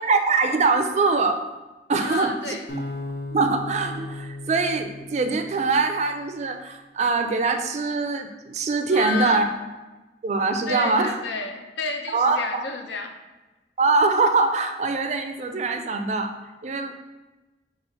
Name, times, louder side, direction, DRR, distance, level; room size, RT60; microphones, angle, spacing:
voice 1, 0.0-1.4 1.9-2.6 3.3-9.4 10.2-11.2 12.1-12.6 13.8-16.3 16.6-16.9, right 3 dB, 40° right, 7 dB, 0.3 m, -23 dB
voice 2, 2.0-2.7 8.9-9.4 10.7-13.1, left 3 dB, 85° left, 4 dB, 0.6 m, -30 dB
sound 1, 2.7-5.9, left 2 dB, 65° left, 0.9 m, -35 dB
4.7 x 2.4 x 4.3 m, 1.1 s
head